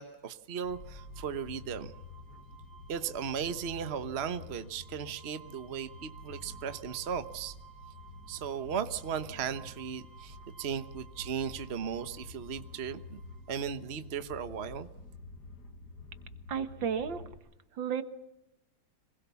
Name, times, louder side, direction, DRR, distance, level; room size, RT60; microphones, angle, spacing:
voice 1, 0.0-1.9 2.9-7.5 8.3-13.2 13.5-14.9, right 7 dB, 40° right, 11 dB, 1.1 m, -36 dB
sound 1, 0.6-17.3, left 3 dB, 60° left, 2.2 m, -49 dB
sound 2, 0.6-14.0, right 6 dB, 10° right, 5.7 m, -56 dB
voice 2, 16.5-17.2 17.8-18.0, right 7 dB, 70° right, 10 dB, 2.2 m, -32 dB
26.5 x 20.5 x 7.1 m, 0.86 s
omnidirectional pair, 2.1 m